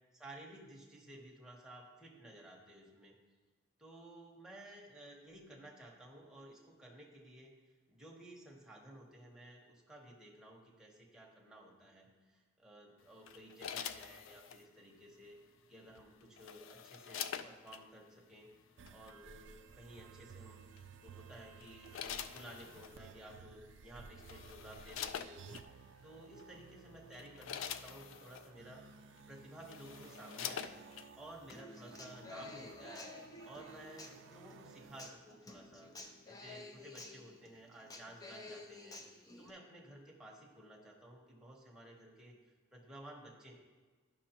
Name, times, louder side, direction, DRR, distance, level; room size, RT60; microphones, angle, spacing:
voice 1, 0.1-3.2 3.8-7.5 7.9-15.4 15.7-18.5 18.9-20.6 21.0-28.8 29.3-33.1 33.4-35.9 36.3-39.0 39.4-42.3 42.7-43.5, right 1 dB, 5° right, -3 dB, 1.0 m, -55 dB
sound 1, 13.3-14.6 16.0-17.8 18.9-19.1 20.8-21.1 21.6-23.0 23.8-23.9 24.2-25.7 26.4-26.6 27.0-28.5 29.2-29.3 29.5-31.1 31.5-31.6, left 8 dB, 80° left, 0.3 m, -45 dB
sound 2, 18.8-35.1, right 6 dB, 65° right, 0.3 m, -57 dB
Human voice / Acoustic guitar, 31.5-39.5, left 2 dB, 20° left, 0.5 m, -52 dB
10.5 x 6.1 x 2.9 m, 1.3 s
head